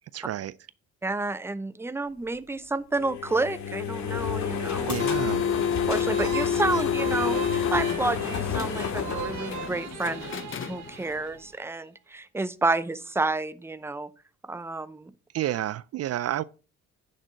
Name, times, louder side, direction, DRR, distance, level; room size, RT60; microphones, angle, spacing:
voice 1, 0.1-0.5 4.9-5.4 15.3-16.4, right 12 dB, 55° right, 0.4 m, -30 dB
voice 2, 1.0-4.9 5.9-14.1 14.4-15.1, right 3 dB, 10° right, 0.6 m, -30 dB
sound 1, 2.9-10.2, left 7 dB, 65° left, 2.3 m, -31 dB
sound 2, 4.7-11.2, left 8 dB, 40° left, 0.8 m, -30 dB
sound 3, 6.1-11.6, right 9 dB, 70° right, 1.2 m, -40 dB
9.9 x 6.7 x 4.5 m
cardioid pair, 90°, 30 cm